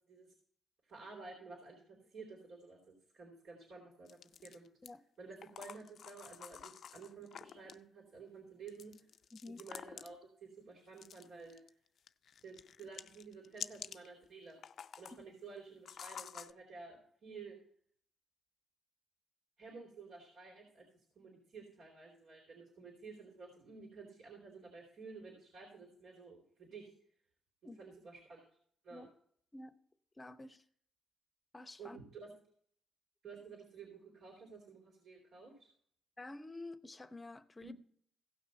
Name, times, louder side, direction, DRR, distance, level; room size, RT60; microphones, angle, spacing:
voice 1, 0.9-4.7 5.2-8.9 9.5-11.6 12.4-14.6 15.0-17.6 19.6-20.9 21.2-26.9 27.6-28.5 28.8-29.1 31.8-32.3 33.2-35.7 37.6-37.7, right 4 dB, 70° right, 3.8 m, -52 dB
sound 1, 4.1-4.9 5.4-7.8 8.7-10.2 11.0-11.7 12.0-14.1 14.5-15.2 15.9-16.5, left 8 dB, 60° left, 0.4 m, -49 dB
voice 2, 30.2-30.6 31.5-32.0 36.2-37.7, left 2 dB, 20° left, 0.8 m, -49 dB
16.5 x 6.2 x 4.3 m
cardioid pair, 90°, 0 cm